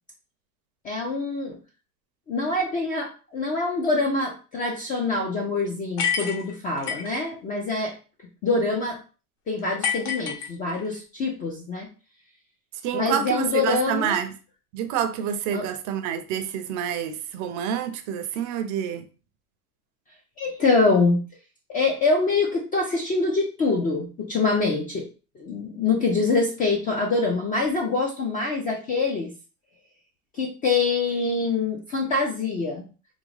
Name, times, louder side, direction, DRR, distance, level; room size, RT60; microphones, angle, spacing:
voice 1, 0.8-1.6 2.3-7.9 8.4-9.0 9.5-11.9 12.9-14.2 15.5-15.7 20.4-21.2 21.7-25.1 25.4-29.3 30.3-32.8, left 3 dB, 20° left, 0.3 m, -25 dB
sound 1, 6.0-7.2 9.8-11.0, left 7 dB, 55° left, 1.0 m, -28 dB
voice 2, 12.8-14.3 14.7-19.1, right 8 dB, 40° right, 0.5 m, -28 dB
3.6 x 2.0 x 3.1 m
supercardioid pair, 115°, 47 cm